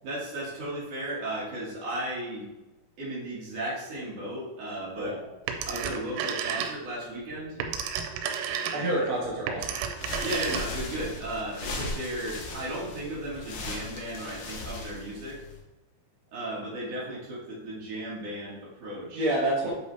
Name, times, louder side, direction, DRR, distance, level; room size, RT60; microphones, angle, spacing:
voice 1, 0.0-2.5 3.0-5.1 5.7-7.6 8.7-8.9 10.2-15.4 16.3-19.2, right 1 dB, 50° right, -7 dB, 2.9 m, -35 dB
Telephone, 5.5-7.0 7.4-11.0, right 7 dB, 90° right, 3.2 m, -32 dB
voice 2, 8.7-9.8 19.1-19.7, right 1 dB, 70° right, -5 dB, 1.2 m, -28 dB
sound 1, 9.9-15.6, left 2 dB, 70° left, 2.0 m, -38 dB
8.3 x 5.4 x 3.4 m, 1.1 s
omnidirectional pair, 5.5 m